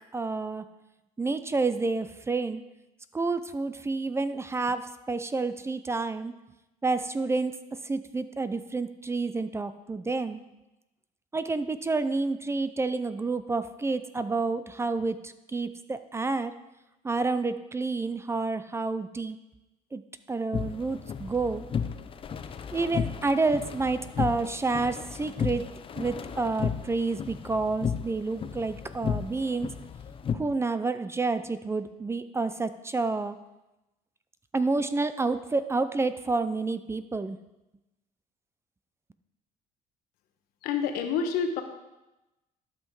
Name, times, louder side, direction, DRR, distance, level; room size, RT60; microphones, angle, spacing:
voice 1, 0.1-0.6 1.2-2.6 3.1-6.3 6.8-7.6 7.8-10.4 11.3-16.5 17.0-19.4 19.9-20.0 20.3-21.6 22.7-25.6 26.0-29.7 30.3-33.4 34.5-37.4, right 3 dB, 15° right, 12 dB, 0.5 m, -29 dB
sound 1, 20.5-30.4, left 7 dB, 35° left, 0.6 m, -34 dB
voice 2, 40.6-41.6, left 6 dB, 85° left, 6 dB, 1.1 m, -28 dB
12.0 x 5.6 x 4.7 m, 0.98 s
cardioid pair, 110°, 15 cm